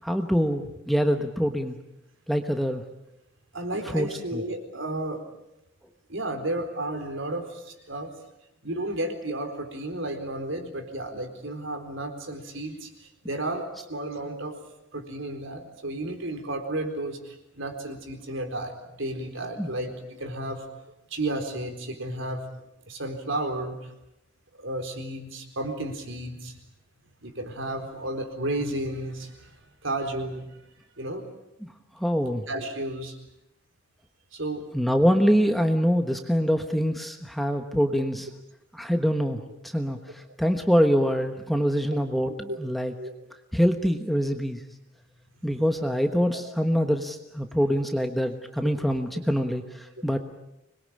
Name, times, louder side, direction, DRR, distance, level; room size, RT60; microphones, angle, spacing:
voice 1, 0.0-1.8 2.3-2.8 3.9-4.4 19.6-19.7 32.0-32.5 34.7-38.3 38.7-42.9 43.5-44.6 45.4-50.2, equal, ahead, 5 dB, 1.2 m, -24 dB
voice 2, 3.5-5.2 6.1-8.1 8.6-14.6 14.9-20.6 21.1-22.5 22.9-23.9 24.5-26.6 27.2-29.5 29.8-30.5 31.0-31.3 32.5-33.2 34.3-34.7 41.9-42.0 42.3-42.6 43.0-43.1 45.4-45.6 48.8-48.9, right 1 dB, 60° right, 6 dB, 4.2 m, -33 dB
26.0 x 21.5 x 8.8 m, 0.87 s
head